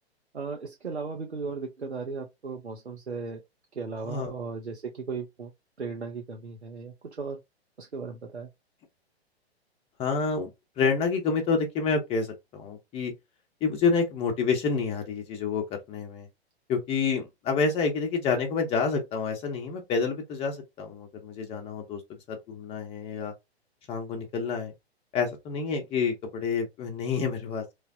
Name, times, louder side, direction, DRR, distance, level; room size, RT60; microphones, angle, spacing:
voice 1, 0.3-3.4 3.7-5.5 5.8-7.4 7.8-8.5, right 4 dB, 90° right, 0.6 m, -36 dB
voice 2, 10.0-10.5 10.8-13.1 13.6-16.3 16.7-22.0 22.3-23.3 23.9-24.7 25.1-27.6, left 5 dB, 20° left, 0.8 m, -28 dB
3.1 x 2.1 x 2.6 m
figure-of-eight pair, 115°, 32 cm